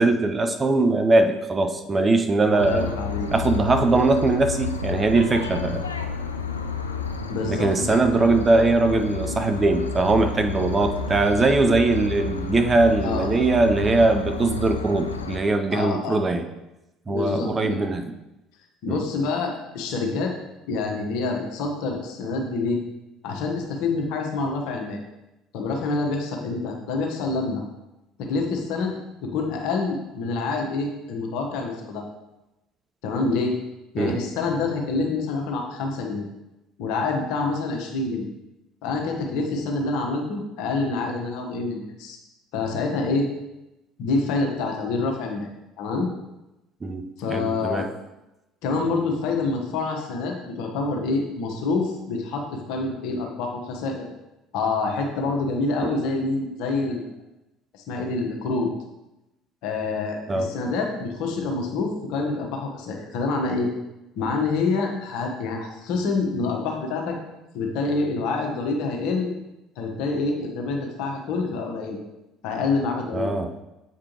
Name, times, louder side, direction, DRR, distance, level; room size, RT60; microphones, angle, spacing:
voice 1, 0.0-2.9 3.3-5.8 7.4-16.5 17.1-18.0 18.9-19.0 34.0-34.2 46.8-47.9 55.8-56.0 60.3-60.5 73.1-73.5, right 2 dB, 25° right, 6 dB, 0.5 m, -21 dB
voice 2, 2.5-3.3 7.3-8.1 13.0-13.3 15.7-16.2 17.1-17.8 18.8-20.3 20.7-22.8 23.2-25.0 25.5-27.6 28.2-32.1 33.0-33.6 33.9-36.3 36.8-38.3 38.8-42.2 42.5-43.3 44.0-45.5 45.8-46.1 47.2-47.9 48.6-54.1 54.5-57.0 57.7-58.7 59.6-63.7 64.1-67.2 67.5-69.3 69.8-72.0 72.4-73.3, left 3 dB, 60° left, 2 dB, 1.0 m, -27 dB
sound 1, 2.6-15.4, left 4 dB, 80° left, 0.4 m, -31 dB
7.4 x 4.9 x 3.0 m, 0.96 s
figure-of-eight pair, 55°, 0 cm